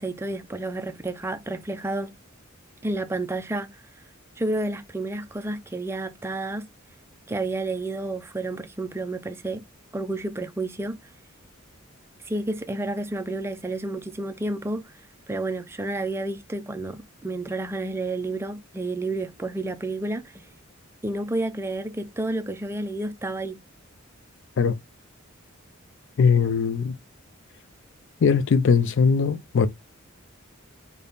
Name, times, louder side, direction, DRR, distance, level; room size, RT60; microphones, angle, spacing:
voice 1, 0.0-2.1 2.8-3.8 4.4-6.7 7.3-9.6 9.9-11.0 12.2-14.8 15.3-20.4 21.0-23.6, right 2 dB, 10° right, 0.3 m, -30 dB
voice 2, 26.2-27.0 28.2-29.7, left 5 dB, 60° left, 0.4 m, -20 dB
3.4 x 2.2 x 3.9 m
head